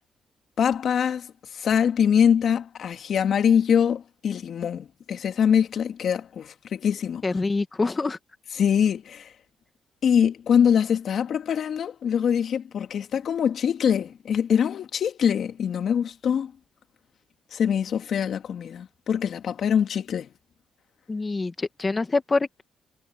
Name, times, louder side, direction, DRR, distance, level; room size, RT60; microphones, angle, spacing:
voice 1, 0.6-1.3 1.5-7.3 8.6-9.3 10.0-16.5 17.5-20.3, left 8 dB, 60° left, 2.6 m, -23 dB
voice 2, 7.2-8.2 21.1-22.6, left 3 dB, 25° left, 1.8 m, -25 dB
cardioid pair, 90°, 0 cm